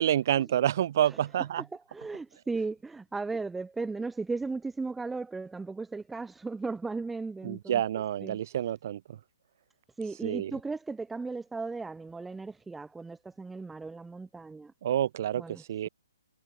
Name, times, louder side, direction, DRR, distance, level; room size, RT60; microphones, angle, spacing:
voice 1, 0.0-1.6 7.4-9.0 10.2-10.5 14.8-15.4 15.7-15.9, right 11 dB, 50° right, 2.7 m, -28 dB
voice 2, 1.5-7.8 8.2-8.4 10.0-14.7 15.4-15.9, right 3 dB, 5° right, 1.0 m, -36 dB
hypercardioid pair, 145°, 2 cm